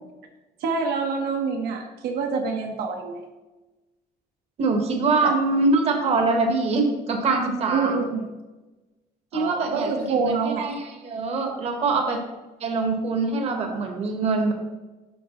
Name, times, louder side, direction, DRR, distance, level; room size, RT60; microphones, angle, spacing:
voice 1, 0.6-3.2 5.2-5.3 7.7-8.3 9.3-10.7, right 4 dB, 70° right, 2 dB, 0.9 m, -26 dB
voice 2, 4.6-8.0 9.3-10.8 11.0-12.2 12.6-14.5, right 3 dB, 40° right, 4 dB, 1.0 m, -23 dB
11.0 x 4.7 x 2.9 m, 1.1 s
cardioid pair, 175°, 17 cm